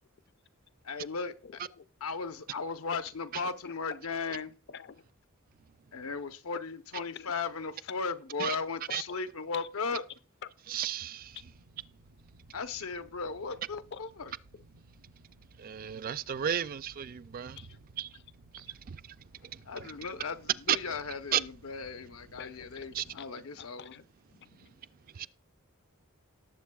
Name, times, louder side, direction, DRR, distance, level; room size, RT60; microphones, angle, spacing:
voice 1, 0.9-1.3 2.0-4.5 5.9-10.0 12.5-14.3 19.7-23.9, left 4 dB, 75° left, 0.8 m, -36 dB
voice 2, 1.4-1.9 2.9-3.0 3.6-3.8 4.3-4.4 4.7-5.1 7.1-7.3 8.9-9.2 9.5-10.0 10.4-10.6 13.5-14.0 14.5-14.6 17.6-17.9 18.1-18.2 18.7-18.8 19.4-19.5 22.0-25.3, left 7 dB, 55° left, 0.5 m, -49 dB
voice 3, 10.7-11.4 15.6-17.6 18.0-18.1 18.5-19.0 19.4-19.6 20.7-20.9 21.3-21.4 22.9-23.0 25.1-25.3, right 10 dB, 40° right, 0.3 m, -33 dB
sound 1, 11.2-23.3, right 2 dB, 85° right, 0.7 m, -59 dB
18.5 x 7.5 x 2.3 m
head